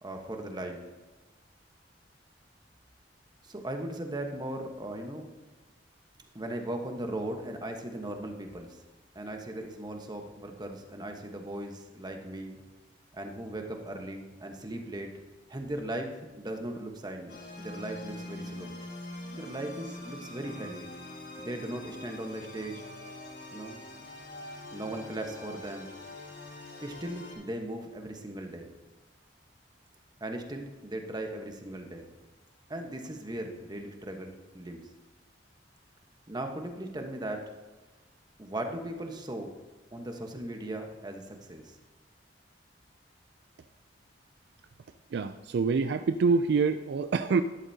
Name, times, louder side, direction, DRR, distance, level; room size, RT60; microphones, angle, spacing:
voice 1, 0.0-0.8 3.4-5.3 6.3-8.8 9.1-12.6 13.1-15.1 15.5-18.7 19.3-20.9 21.4-22.8 23.5-23.8 24.7-25.9 26.8-28.7 30.2-32.1 32.7-34.9 36.3-37.5 38.4-39.5 39.9-41.8, right 1 dB, 25° right, 4 dB, 1.1 m, -38 dB
sound 1, 17.3-27.3, left 1 dB, 65° left, 3.9 m, -44 dB
voice 2, 45.1-47.4, right 4 dB, 65° right, 10 dB, 0.4 m, -26 dB
13.0 x 11.0 x 2.8 m, 1.2 s
head